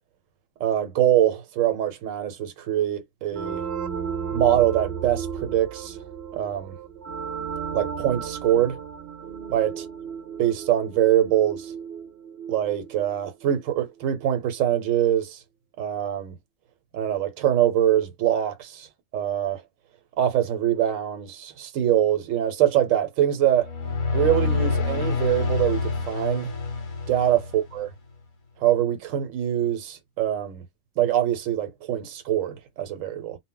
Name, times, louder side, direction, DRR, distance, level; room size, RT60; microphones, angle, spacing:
voice 1, 0.6-3.6 4.3-6.0 6.3-6.8 7.7-8.8 9.5-9.7 10.4-11.7 12.5-15.4 15.8-16.3 16.9-18.9 19.1-19.6 20.2-23.7 24.1-26.5 27.1-27.4 27.7-27.9 28.6-30.6 31.0-33.4, right 11 dB, 85° right, 1.0 m, -23 dB
sound 1, 3.3-13.8, right 7 dB, 65° right, 0.7 m, -34 dB
sound 2, 23.5-27.9, left 4 dB, 50° left, 0.7 m, -27 dB
2.1 x 2.0 x 3.6 m
omnidirectional pair, 1.3 m